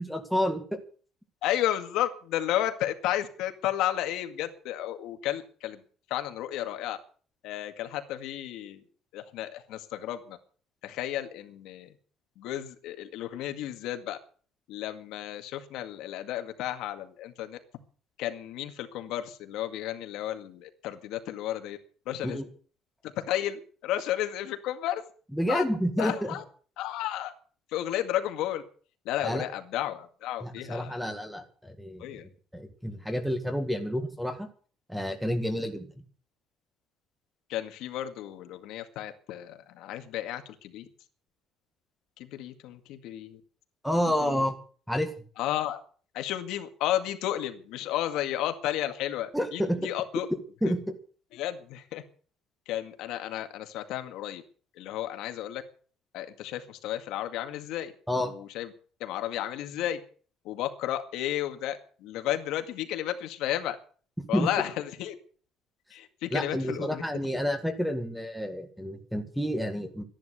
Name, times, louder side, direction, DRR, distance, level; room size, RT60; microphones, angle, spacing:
voice 1, 0.1-0.8 22.2-22.4 25.3-26.3 29.2-29.4 30.4-32.2 32.5-34.5 34.9-35.9 43.8-44.6 44.9-45.1 49.3-49.8 50.6-50.8 58.1-58.3 64.3-64.5 66.3-70.0, equal, ahead, 8 dB, 1.9 m, -29 dB
voice 2, 1.4-5.8 6.1-7.0 7.4-8.8 9.1-10.4 10.8-11.9 12.4-14.2 14.7-17.6 18.2-21.8 22.1-22.4 23.0-25.0 25.5-25.6 26.0-26.4 26.8-27.3 27.7-28.6 29.1-31.0 32.0-32.3 37.5-40.9 42.2-43.4 44.2-44.4 45.4-45.8 46.1-50.3 50.6-50.7 51.3-52.0 52.7-54.4 54.8-55.6 56.1-58.7 59.0-60.0 60.4-63.8 64.3-65.1 65.9-67.0, left 12 dB, 75° left, 7 dB, 2.0 m, -33 dB
14.0 x 11.0 x 8.1 m, 0.43 s
cardioid pair, 170°, 0 cm